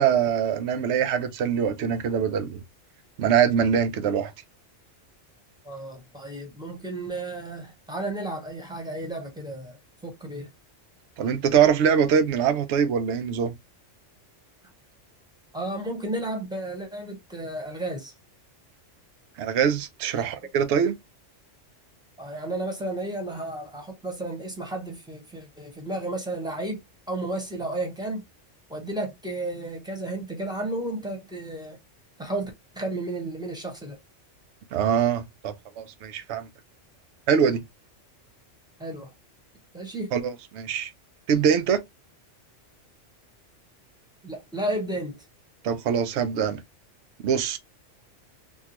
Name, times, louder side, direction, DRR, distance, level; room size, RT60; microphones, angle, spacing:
voice 1, 0.0-2.6 3.2-4.3 11.2-13.5 19.4-21.0 34.7-36.5 37.3-37.6 40.1-40.9 41.3-41.8 45.6-46.6 47.2-47.6, right 7 dB, 70° right, 0.9 m, -23 dB
voice 2, 5.6-10.5 15.5-18.1 20.1-20.3 22.2-26.8 27.1-28.2 28.7-31.8 32.2-34.0 38.8-39.1 39.7-40.1 44.2-45.2, right 1 dB, 5° right, 1.0 m, -33 dB
3.6 x 2.3 x 2.9 m
omnidirectional pair, 1.3 m